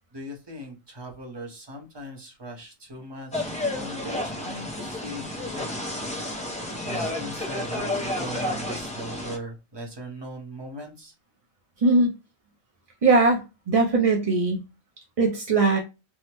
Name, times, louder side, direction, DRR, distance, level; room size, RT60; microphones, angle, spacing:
voice 1, 0.1-11.1, right 1 dB, 25° right, 0.7 m, -39 dB
sound 1, 3.3-9.4, left 1 dB, 10° left, 0.4 m, -31 dB
voice 2, 11.8-12.1 13.0-14.6 15.2-15.8, right 3 dB, 55° right, 0.4 m, -20 dB
3.5 x 2.0 x 2.9 m
omnidirectional pair, 1.3 m